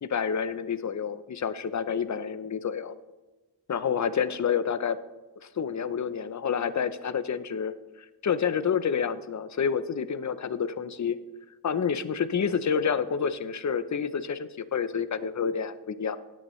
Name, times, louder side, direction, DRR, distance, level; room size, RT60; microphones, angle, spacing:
voice 1, 0.0-2.9 3.7-5.0 5.6-7.7 8.2-11.2 11.6-16.2, left 7 dB, 45° left, 13 dB, 0.6 m, -28 dB
17.0 x 9.0 x 3.1 m, 1.2 s
wide cardioid pair, 115°, 42 cm